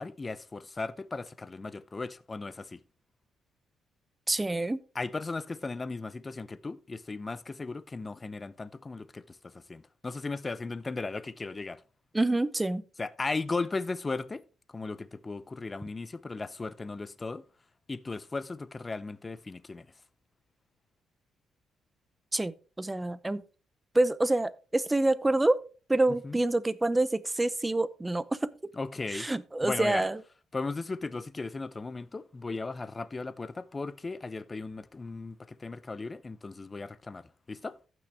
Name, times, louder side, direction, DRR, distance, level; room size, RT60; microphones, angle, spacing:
voice 1, 0.0-2.8 4.9-11.8 13.0-14.4 14.7-17.4 17.9-19.9 26.1-26.4 28.7-29.3 29.6-30.1 30.5-37.8, left 3 dB, 25° left, 0.6 m, -36 dB
voice 2, 4.3-4.8 12.1-12.8 22.3-23.4 23.9-25.6 25.9-28.5 29.1-30.2, right 2 dB, 15° right, 0.6 m, -27 dB
14.5 x 6.1 x 3.4 m
cardioid pair, 90°, 0 cm